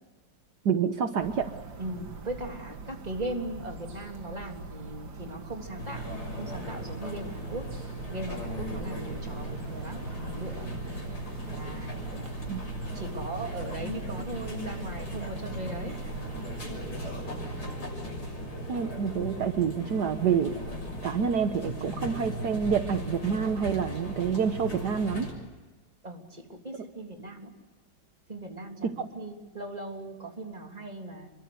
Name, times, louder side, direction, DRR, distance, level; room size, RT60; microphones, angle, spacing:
voice 1, 0.7-1.5 12.5-12.6 18.7-20.5 21.0-25.3, right 7 dB, 65° right, 7 dB, 1.7 m, -27 dB
sound 1, 1.2-17.8, right 4 dB, 85° right, 2.9 m, -43 dB
voice 2, 1.8-7.7 8.1-10.7 11.4-12.3 12.9-16.0 26.0-27.5 28.3-31.3, right 1 dB, 20° right, 2 dB, 3.4 m, -39 dB
sound 2, 5.8-25.3, equal, 60° left, 7.4 m, -37 dB
27.5 x 23.5 x 8.0 m, 1.2 s
omnidirectional pair, 2.0 m